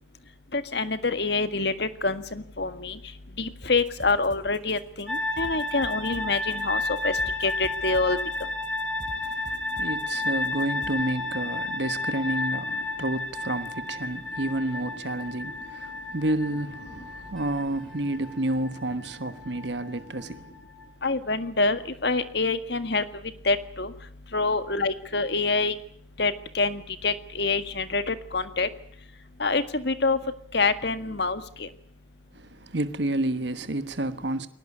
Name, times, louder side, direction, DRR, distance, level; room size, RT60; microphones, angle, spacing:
voice 1, 0.5-3.0 3.4-7.1 7.4-8.2 21.0-23.0 23.5-23.9 24.3-25.7 26.2-28.7 29.4-30.2 30.5-31.7, left 3 dB, 55° left, 1.8 m, -26 dB
sound 1, 3.6-10.9, equal, 40° right, 3.9 m, -45 dB
sound 2, 5.1-20.8, left 2 dB, 5° left, 5.7 m, -32 dB
voice 2, 9.1-20.5 32.3-34.5, right 1 dB, 60° right, 1.3 m, -30 dB
22.5 x 18.5 x 9.8 m
head